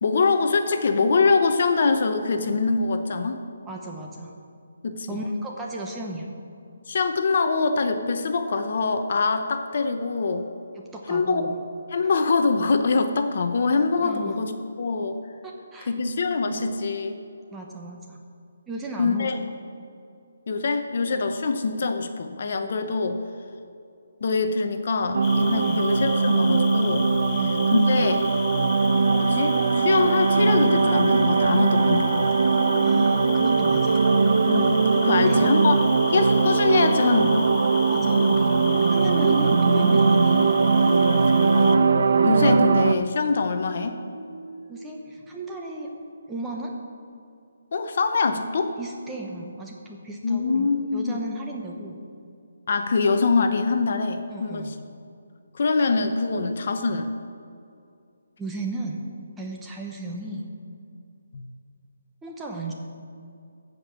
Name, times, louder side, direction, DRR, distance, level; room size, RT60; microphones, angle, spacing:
voice 1, 0.0-3.4 4.8-5.2 6.9-10.5 11.1-11.4 11.9-14.5 14.8-15.2 15.9-17.2 19.0-19.4 20.5-23.2 24.2-27.1 27.7-28.2 29.1-32.3 34.4-35.8 36.1-37.5 39.2-39.4 41.5-44.0 47.7-48.7 50.2-51.2 52.7-54.7 55.5-57.1 61.3-61.4, left 4 dB, 50° left, 7 dB, 0.8 m, -24 dB
voice 2, 3.7-4.3 5.1-6.3 10.9-11.6 14.0-14.4 15.4-15.9 17.5-18.2 18.7-19.3 25.6-25.8 27.3-27.7 32.8-34.0 35.1-35.5 37.8-38.5 38.9-40.5 44.7-45.9 46.3-46.7 48.8-52.0 54.3-54.8 58.4-59.0 59.4-60.5 62.2-62.7, right 2 dB, 5° right, -1 dB, 1.0 m, -34 dB
sound 1, 25.1-43.0, right 4 dB, 60° right, 0.5 m, -20 dB
Cricket, 25.2-41.8, left 9 dB, 25° left, 0.5 m, -38 dB
sound 2, 31.0-33.6 33.9-34.2 34.7-45.0 45.3-45.9, right 1 dB, 80° right, 2.7 m, -40 dB
14.5 x 5.3 x 7.4 m, 2.5 s
hypercardioid pair, 170°, 0 cm